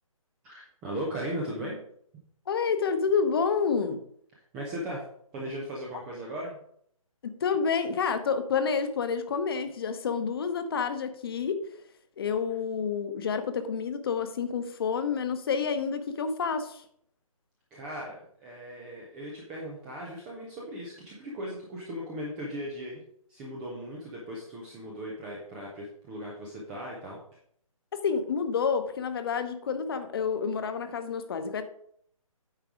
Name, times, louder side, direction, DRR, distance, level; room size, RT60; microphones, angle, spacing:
voice 1, 0.4-1.8 4.5-5.0 5.3-6.6 17.7-23.0 23.3-27.2, equal, 5° right, -3 dB, 0.3 m, -37 dB
voice 2, 2.5-4.0 7.2-11.6 12.2-16.8 27.9-31.6, left 6 dB, 40° left, 10 dB, 0.9 m, -29 dB
9.0 x 4.6 x 4.9 m, 0.66 s
hypercardioid pair, 155°, 18 cm